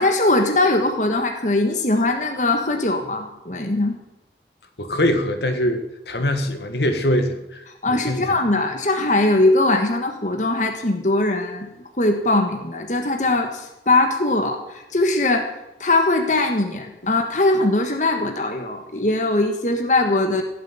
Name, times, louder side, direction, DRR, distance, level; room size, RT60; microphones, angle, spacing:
voice 1, 0.0-4.0 7.8-11.7 12.0-15.5 15.8-20.4, left 2 dB, 45° left, 4 dB, 1.5 m, -20 dB
voice 2, 4.8-8.2, left 1 dB, 70° left, 7 dB, 1.7 m, -23 dB
16.0 x 7.7 x 9.5 m, 0.94 s
head